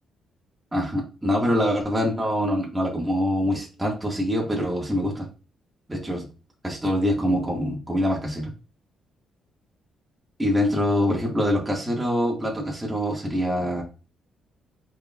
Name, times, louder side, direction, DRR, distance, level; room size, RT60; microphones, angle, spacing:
voice 1, 0.7-5.3 5.9-6.2 6.6-8.5 10.4-13.8, equal, 10° right, -2 dB, 1.6 m, -24 dB
4.8 x 4.3 x 2.3 m, 0.32 s
cardioid pair, 90°, 0 cm